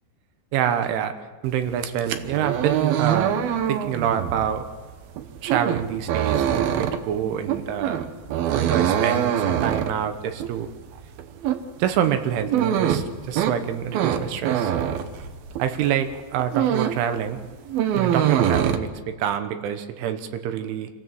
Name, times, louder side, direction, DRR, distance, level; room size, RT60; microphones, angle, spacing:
voice 1, 0.5-1.1 1.4-3.4 3.7-4.6 5.4-8.0 8.5-10.7 11.8-14.9 15.6-17.4 17.9-20.9, right 9 dB, 85° right, 8 dB, 3.6 m, -26 dB
sound 1, 1.7-15.8 16.1-17.1 17.4-18.8, right 9 dB, 70° right, 2.4 m, -24 dB
26.5 x 16.0 x 7.7 m, 1.4 s
omnidirectional pair, 5.4 m